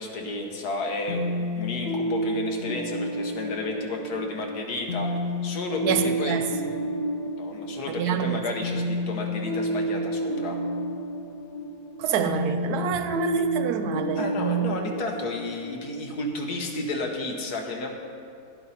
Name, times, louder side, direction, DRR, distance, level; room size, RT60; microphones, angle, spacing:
voice 1, 0.0-6.4 7.4-10.6 14.2-17.9, left 2 dB, 80° left, 1.7 m, -32 dB
sound 1, 1.1-16.7, equal, 65° left, 1.8 m, -30 dB
voice 2, 5.8-6.5 7.9-8.4 12.0-14.7, right 8 dB, 85° right, 1.2 m, -27 dB
11.0 x 11.0 x 4.2 m
omnidirectional pair, 1.6 m